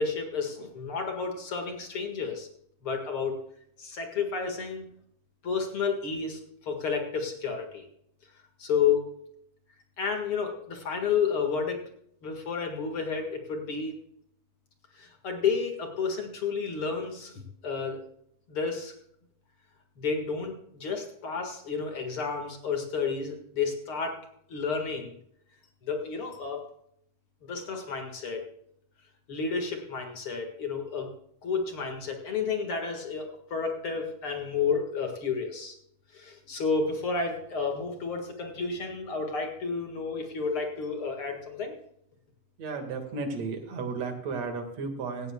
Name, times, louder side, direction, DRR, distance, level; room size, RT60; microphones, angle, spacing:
voice 1, 0.0-2.5 2.8-3.4 3.8-4.9 5.4-7.9 8.6-9.1 10.0-11.8 12.2-13.9 15.0-18.0 18.5-18.9 20.0-24.2 24.5-25.2 25.8-26.7 27.4-28.4 29.3-31.1 31.4-35.8 36.1-41.7, left 5 dB, 45° left, 3 dB, 2.3 m, -31 dB
voice 2, 42.6-45.3, right 4 dB, 55° right, 5 dB, 2.9 m, -34 dB
17.5 x 14.5 x 2.3 m, 0.71 s
omnidirectional pair, 3.7 m